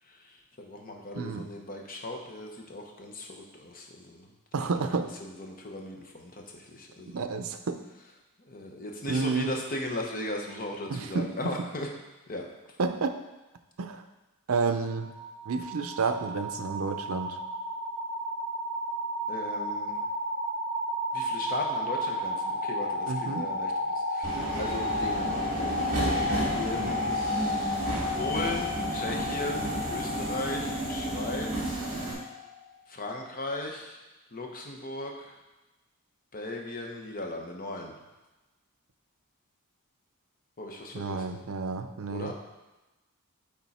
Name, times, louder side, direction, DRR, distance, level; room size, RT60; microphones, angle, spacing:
voice 1, 0.1-4.3 4.6-4.9 5.2-7.2 8.4-11.9 12.3-12.5 19.3-20.0 21.1-25.9 26.5-27.2 28.1-31.8 32.9-34.0 34.3-35.3 36.3-37.9 40.6-41.4 42.1-42.3, left 1 dB, 40° left, 1 dB, 0.9 m, -37 dB
voice 2, 1.1-1.5 4.5-5.1 7.0-7.8 9.1-9.5 10.9-11.7 12.8-13.2 13.8-14.0 14.5-15.1 15.5-17.4 23.1-23.5 40.9-42.3, right 4 dB, 65° right, 8 dB, 0.5 m, -30 dB
sound 1, 14.7-32.6, left 1 dB, 85° left, 2.1 m, -33 dB
Subway metro underground, 24.2-32.1, right 2 dB, 35° right, 1.8 m, -32 dB
8.8 x 3.8 x 4.2 m, 1.1 s
head